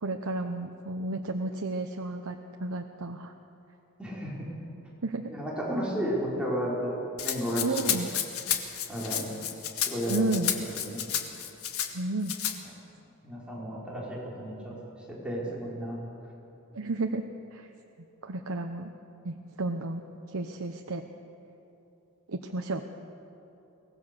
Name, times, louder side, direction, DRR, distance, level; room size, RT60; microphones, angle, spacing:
voice 1, 0.0-3.3 5.0-5.3 7.6-8.1 10.1-10.5 11.9-12.3 16.7-17.2 17.5-17.7 18.2-18.9 19.2-20.0 20.3-21.0 22.3-22.8, right 2 dB, 75° right, 4 dB, 0.9 m, -32 dB
voice 2, 4.0-4.5 5.3-7.0 7.2-8.0 8.9-9.3 9.8-10.5 10.8-11.0 13.2-14.8 15.2-16.0, equal, 5° right, -6 dB, 4.6 m, -33 dB
Rattle (instrument), 7.2-11.9 12.3-12.6, left 9 dB, 85° left, 1.7 m, -31 dB
23.0 x 19.0 x 6.8 m, 2.9 s
head